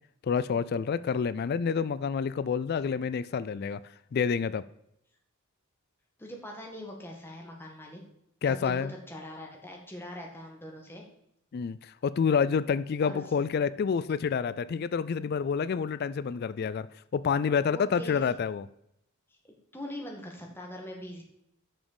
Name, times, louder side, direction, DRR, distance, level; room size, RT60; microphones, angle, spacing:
voice 1, 0.2-3.8 4.1-4.6 8.4-8.9 11.5-16.9 17.1-18.6, left 6 dB, 45° left, 16 dB, 0.3 m, -28 dB
voice 2, 6.2-8.0 8.5-11.0 13.0-13.2 17.7-18.3 19.7-21.2, left 1 dB, 10° left, 0 dB, 1.8 m, -42 dB
6.4 x 6.3 x 6.8 m, 0.77 s
head